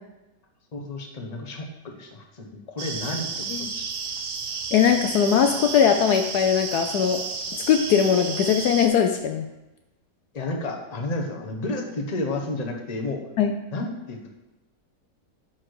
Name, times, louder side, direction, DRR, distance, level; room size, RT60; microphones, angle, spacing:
voice 1, 0.7-3.8 10.3-13.2 13.7-14.3, left 2 dB, 25° left, 1 dB, 1.0 m, -31 dB
sound 1, 2.8-8.9, right 5 dB, 45° right, 0.9 m, -32 dB
voice 2, 4.7-7.2 7.5-9.4 13.4-13.5, left 8 dB, 70° left, 5 dB, 1.1 m, -20 dB
11.0 x 4.5 x 4.8 m, 1.0 s
omnidirectional pair, 1.9 m